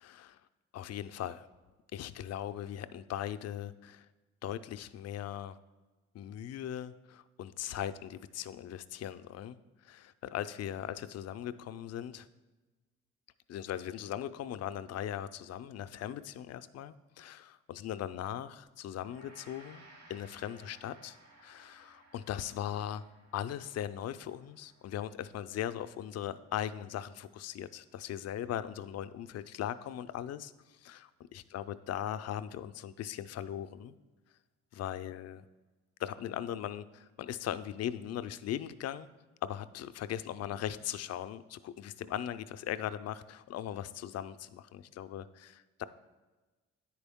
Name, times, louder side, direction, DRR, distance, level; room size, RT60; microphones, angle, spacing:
voice 1, 0.0-0.4 0.7-1.5 1.9-4.1 4.4-5.6 6.1-9.6 9.8-12.3 13.5-21.2 21.4-23.0 23.3-33.9 34.7-35.4 36.0-39.1 39.4-45.8, left 11 dB, 55° left, 12 dB, 0.4 m, -39 dB
Gong, 19.0-28.4, right 1 dB, 60° right, 1.7 m, -60 dB
9.7 x 4.5 x 3.5 m, 1.2 s
cardioid pair, 90°, 30 cm